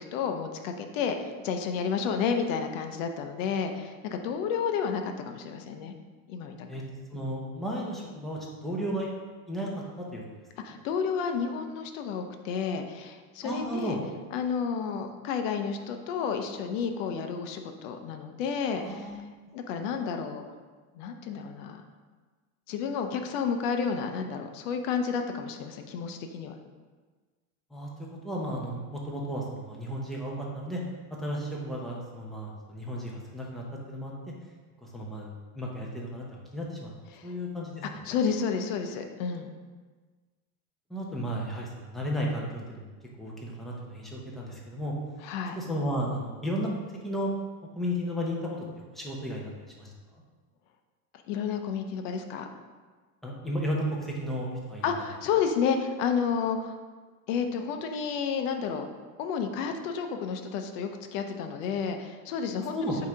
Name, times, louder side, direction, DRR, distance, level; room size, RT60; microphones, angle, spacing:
voice 1, 0.0-5.9 6.3-6.7 10.6-14.0 14.3-19.1 19.5-20.4 21.0-21.8 22.7-26.5 37.1-37.3 38.0-39.5 45.2-45.6 51.3-52.5 54.8-56.8 57.3-58.9 59.2-62.7, left 6 dB, 60° left, 6 dB, 0.8 m, -31 dB
voice 2, 7.1-9.1 9.5-9.8 10.1-10.2 13.4-14.0 18.8-19.2 27.7-27.9 28.2-30.8 31.2-34.1 34.8-36.9 37.2-37.8 40.9-42.9 43.2-44.9 45.6-46.7 47.0-47.3 47.8-48.6 48.9-49.5 49.8-50.2 53.2-54.9 62.7-63.0, equal, ahead, -4 dB, 0.8 m, -33 dB
8.0 x 2.9 x 4.9 m, 1.4 s
supercardioid pair, 150°, 43 cm